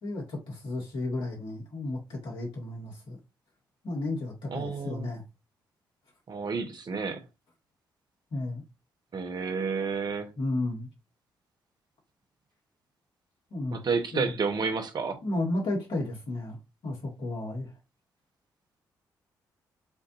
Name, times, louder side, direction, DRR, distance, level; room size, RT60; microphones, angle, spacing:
voice 1, 0.0-3.2 3.8-5.2 8.3-8.6 10.4-10.9 13.5-13.8 14.1-14.3 15.2-16.6 16.8-17.7, left 2 dB, 65° left, 2.3 m, -33 dB
voice 2, 4.5-5.1 6.3-7.2 9.1-10.3 13.7-15.2, right 5 dB, 50° right, 1.1 m, -30 dB
7.1 x 2.7 x 2.6 m
hypercardioid pair, 40°, 9 cm